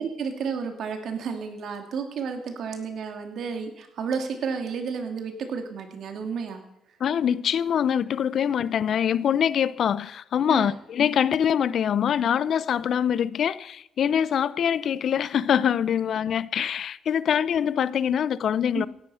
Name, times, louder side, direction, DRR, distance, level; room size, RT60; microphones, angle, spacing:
voice 1, 0.0-6.6 10.5-10.7 18.7-18.9, right 5 dB, 70° right, 2.6 m, -31 dB
voice 2, 7.0-18.9, left 8 dB, 60° left, 0.5 m, -24 dB
16.5 x 11.0 x 5.6 m
cardioid pair, 90°, 0 cm